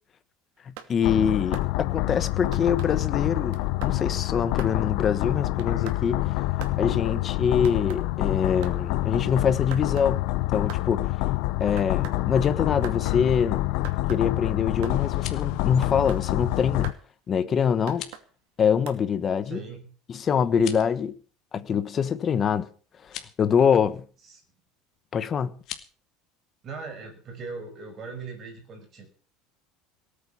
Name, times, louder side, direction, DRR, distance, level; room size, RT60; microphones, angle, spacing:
sound 1, 0.6-0.9 1.5-1.7 2.5-2.9 3.5-4.0 4.6-4.8 5.6-6.0 6.6-6.8 7.6-8.0 8.6-8.8 9.7-10.1 10.7-10.9 11.8-12.2 12.8-13.0 13.8-14.2 14.8-15.0 15.8-16.2 16.8-17.0 17.9-18.3 18.9-19.0, right 10 dB, 70° right, 2.5 m, -41 dB
voice 1, 0.9-6.2 6.6-10.2 10.5-11.0 11.6-13.6 14.1-16.9 17.3-18.0 18.6-19.6 20.1-21.1 21.5-22.7 23.4-24.0 25.1-25.5, left 7 dB, 25° left, 1.2 m, -24 dB
sound 2, 1.0-16.9, left 18 dB, 60° left, 0.8 m, -27 dB
sound 3, 15.0-15.6 17.8-18.2 20.5-21.0 23.0-23.3 25.6-25.9, left 12 dB, 45° left, 2.1 m, -40 dB
voice 2, 19.4-19.9 20.3-20.4 24.2-24.4 26.6-29.1, right 4 dB, 30° right, 5.8 m, -39 dB
18.5 x 8.6 x 7.1 m
cardioid pair, 160°, 0 cm